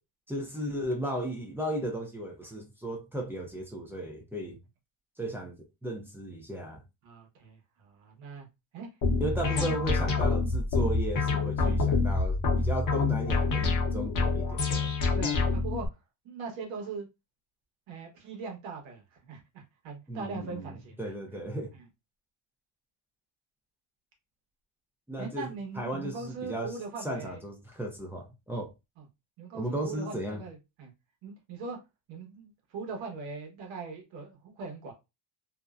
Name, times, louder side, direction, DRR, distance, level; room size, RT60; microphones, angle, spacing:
voice 1, 0.3-4.6 5.2-6.8 9.2-14.9 20.1-21.7 25.1-25.5 25.7-28.7 29.5-30.4, right 1 dB, 5° right, 0.4 m, -35 dB
voice 2, 7.0-8.5 8.7-8.9 9.6-9.8 10.9-11.0 11.6-11.8 15.1-15.9 16.2-17.1 17.9-21.2 25.2-27.4 29.0-29.1 29.4-30.9 31.2-31.8 32.1-34.9, right 4 dB, 85° right, 1.1 m, -41 dB
sound 1, 9.0-15.9, left 3 dB, 45° left, 0.7 m, -27 dB
2.6 x 2.0 x 2.3 m
cardioid pair, 155°, 45 cm